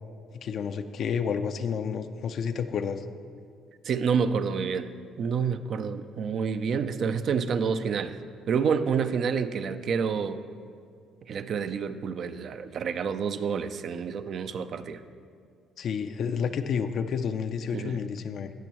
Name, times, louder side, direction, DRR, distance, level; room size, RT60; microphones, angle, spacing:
voice 1, 0.3-3.0 15.8-18.5, left 6 dB, 60° left, 9 dB, 0.4 m, -30 dB
voice 2, 3.8-4.9 5.2-8.2 8.5-10.4 11.3-15.0 17.7-18.0, right 6 dB, 60° right, 10 dB, 0.5 m, -28 dB
17.0 x 6.0 x 3.1 m, 2.2 s
supercardioid pair, 65°, 0 cm